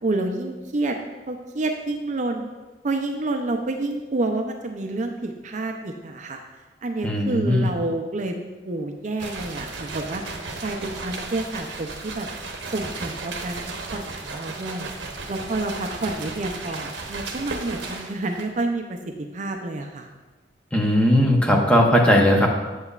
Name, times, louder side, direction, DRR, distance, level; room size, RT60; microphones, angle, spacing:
voice 1, 0.0-1.0 1.3-2.5 2.8-6.4 6.8-10.2 10.6-12.3 12.7-14.9 15.3-20.1, right 2 dB, 40° right, 4 dB, 0.5 m, -29 dB
voice 2, 7.0-7.7 20.7-22.5, equal, 5° left, -1 dB, 0.8 m, -18 dB
sound 1, 9.2-18.6, right 3 dB, 70° right, 0.9 m, -35 dB
7.9 x 7.6 x 2.4 m, 1.2 s
head